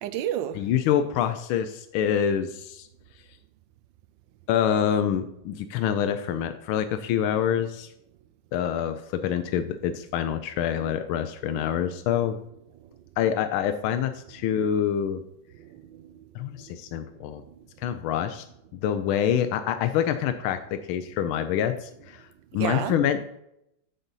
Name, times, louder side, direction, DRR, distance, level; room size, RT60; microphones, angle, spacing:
voice 1, 0.0-0.7 12.8-12.9 15.6-16.2 16.6-16.7 17.5-17.7 22.6-23.0, right 11 dB, 75° right, 1.2 m, -32 dB
voice 2, 0.5-2.9 4.5-7.9 8.5-12.4 13.2-15.2 16.3-17.4 17.8-18.4 18.7-22.3 22.5-23.2, left 9 dB, 85° left, 1.4 m, -26 dB
10.0 x 4.0 x 5.4 m
omnidirectional pair, 2.2 m